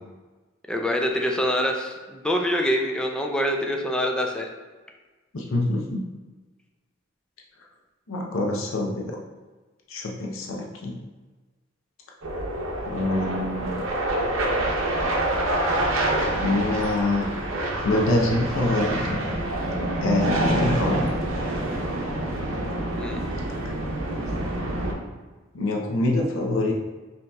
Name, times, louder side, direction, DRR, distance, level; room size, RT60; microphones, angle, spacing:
voice 1, 0.7-4.5 23.0-23.2, equal, 5° left, 1 dB, 0.4 m, -25 dB
voice 2, 5.3-6.0 8.1-9.2 9.9-11.0 12.9-13.8 16.3-17.3 17.8-19.2 20.0-21.1 25.5-26.7, left 2 dB, 75° left, -1 dB, 0.6 m, -25 dB
sound 1, 12.2-24.9, right 1 dB, 85° right, 0.7 m, -26 dB
5.3 x 2.9 x 2.3 m, 1.3 s
head